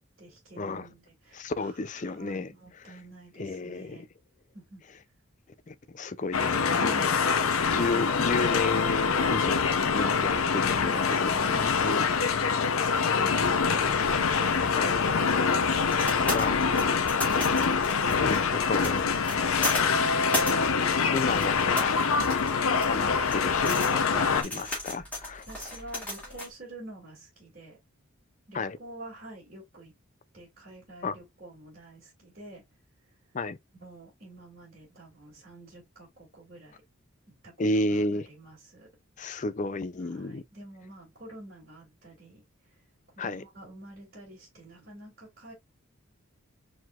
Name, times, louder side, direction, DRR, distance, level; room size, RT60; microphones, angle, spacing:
voice 1, 0.0-1.8 2.0-4.1 4.5-4.8 6.7-7.3 7.6-8.2 10.0-13.4 13.6-18.3 21.8-22.1 24.1-24.3 25.4-27.8 28.5-29.9 30.3-32.6 33.7-36.8 37.4-38.9 40.1-42.4 42.7-42.8 43.2-45.5, right 1 dB, 40° right, 2.7 m, -47 dB
voice 2, 0.6-0.9 1.3-3.0 3.3-4.1 5.7-6.8 7.7-12.7 14.8-14.9 16.3-16.6 18.2-19.3 21.1-21.9 22.9-25.8 28.5-28.8 31.0-31.1 33.3-33.6 37.6-38.3 39.2-40.4 43.2-43.4, left 2 dB, 35° left, 0.4 m, -32 dB
sound 1, 6.3-24.4, left 5 dB, 75° left, 0.7 m, -25 dB
sound 2, 15.0-26.5, left 1 dB, 5° left, 2.2 m, -36 dB
4.6 x 3.8 x 2.4 m
head